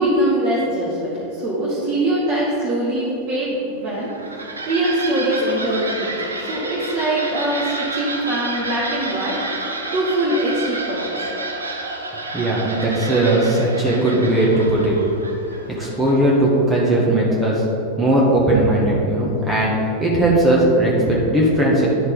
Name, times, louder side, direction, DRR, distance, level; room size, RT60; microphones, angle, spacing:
voice 1, 0.0-4.1 4.6-9.4 9.9-11.2 12.9-13.0, right 1 dB, 40° right, -6 dB, 1.5 m, -22 dB
sound 1, 3.9-16.4, right 2 dB, 75° right, 0.8 m, -30 dB
voice 2, 12.3-14.9 15.8-17.6 18.0-19.7 20.0-21.9, right 1 dB, 15° right, -5 dB, 1.4 m, -18 dB
10.0 x 6.2 x 3.9 m, 3.0 s
figure-of-eight pair, 90°, 0 cm